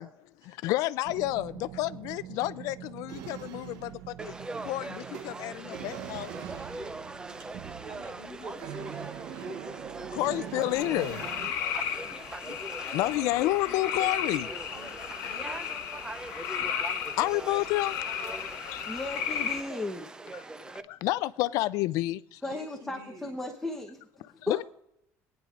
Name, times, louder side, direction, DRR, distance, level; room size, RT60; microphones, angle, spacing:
voice 1, 0.0-4.3 4.6-6.3 10.1-11.6 12.4-14.5 16.5-16.7 17.2-18.8 20.3-20.4 20.9-22.4 24.2-24.6, left 17 dB, 70° left, 0.3 m, -30 dB
sound 1, 1.0-11.5, right 10 dB, 75° right, 0.8 m, -43 dB
Conversation / Crowd, 4.2-20.8, right 2 dB, 15° right, 0.5 m, -41 dB
voice 2, 6.9-10.0 11.5-12.1 14.7-16.5 18.6-19.2 20.2-20.6 20.9-21.0 22.4-23.4, right 1 dB, 50° right, 4.7 m, -53 dB
sound 2, 10.7-19.6, left 8 dB, 85° left, 1.2 m, -34 dB
voice 3, 18.9-20.1 22.4-24.6, left 2 dB, 5° left, 0.9 m, -36 dB
21.5 x 10.0 x 2.5 m
cardioid pair, 145°, 6 cm